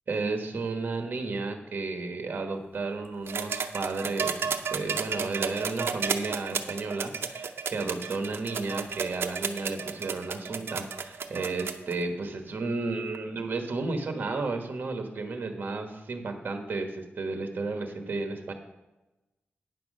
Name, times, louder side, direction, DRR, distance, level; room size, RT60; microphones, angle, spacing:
voice 1, 0.1-18.5, right 3 dB, 55° right, 5 dB, 1.2 m, -33 dB
sound 1, 3.3-11.9 13.1-13.2, right 6 dB, 75° right, 0.7 m, -32 dB
9.5 x 6.0 x 6.2 m, 1.0 s
wide cardioid pair, 135°, 4 cm